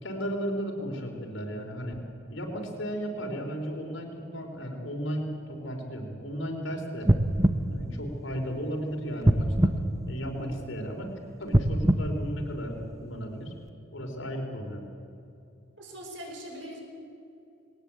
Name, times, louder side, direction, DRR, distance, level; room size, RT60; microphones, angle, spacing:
voice 1, 0.0-2.0 2.3-7.1 7.7-9.8 10.1-11.1 11.4-13.5 13.9-14.8, equal, 75° left, 2 dB, 4.0 m, -34 dB
sound 1, 7.0-8.7 9.2-10.8 11.4-13.1 13.7-13.8, right 1 dB, 15° right, 0.8 m, -25 dB
voice 2, 15.8-16.8, equal, 65° right, 1 dB, 5.2 m, -41 dB
21.0 x 18.0 x 8.5 m, 2.7 s
head